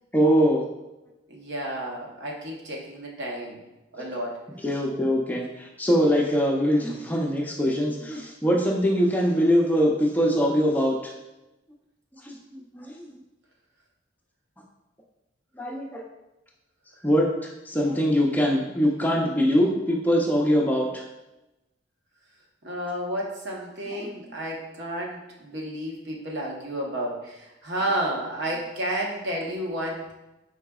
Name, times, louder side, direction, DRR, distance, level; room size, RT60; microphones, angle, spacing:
voice 1, 0.1-0.6 4.6-11.0 12.2-12.4 12.7-13.1 15.6-16.0 17.0-21.0 23.9-24.1, equal, 10° left, -1 dB, 0.5 m, -23 dB
voice 2, 1.3-3.6 3.9-4.4 22.6-30.1, right 1 dB, 65° right, -2 dB, 0.9 m, -31 dB
4.8 x 3.8 x 2.3 m, 0.98 s
head